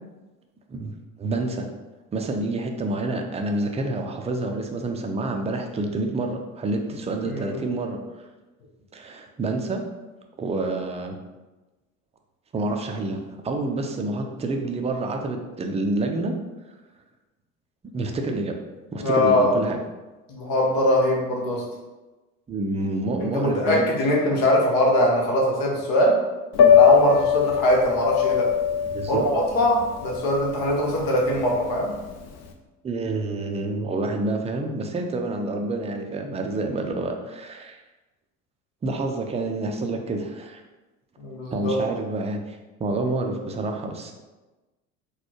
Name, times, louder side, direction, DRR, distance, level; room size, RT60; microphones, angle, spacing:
voice 1, 1.2-1.7 2.1-8.0 8.9-9.8 10.4-11.2 12.5-16.4 17.9-18.6 18.9-19.8 22.5-23.9 28.9-29.3 32.8-37.8 38.8-40.6 41.5-44.1, right 2 dB, 15° right, 3 dB, 0.4 m, -28 dB
voice 2, 7.3-7.6 19.0-19.5 20.3-21.6 23.2-26.2 26.7-28.5 29.1-31.9 41.2-41.8, left 1 dB, 55° left, -2 dB, 1.2 m, -21 dB
Piano, 26.5-32.5, left 8 dB, 40° left, 0.5 m, -21 dB
3.9 x 2.3 x 3.1 m, 1.1 s
hypercardioid pair, 65°, 42 cm